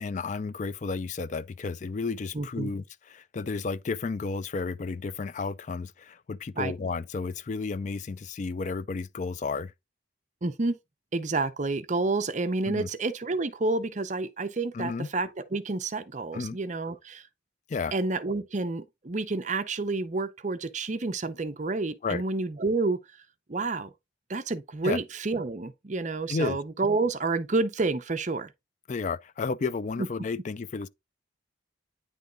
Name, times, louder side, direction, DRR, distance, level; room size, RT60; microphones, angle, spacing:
voice 1, 0.0-2.8 3.1-9.7 12.7-12.9 14.7-15.1 16.3-16.6 17.7-17.9 22.0-22.2 24.8-25.0 26.3-26.6 28.9-30.9, left 4 dB, 40° left, 0.3 m, -32 dB
voice 2, 2.3-2.7 6.6-6.7 10.4-10.8 11.1-17.3 17.9-23.0 23.5-23.9 24.3-28.5 30.0-30.1, right 3 dB, 35° right, 0.6 m, -29 dB
9.4 x 3.5 x 3.8 m
head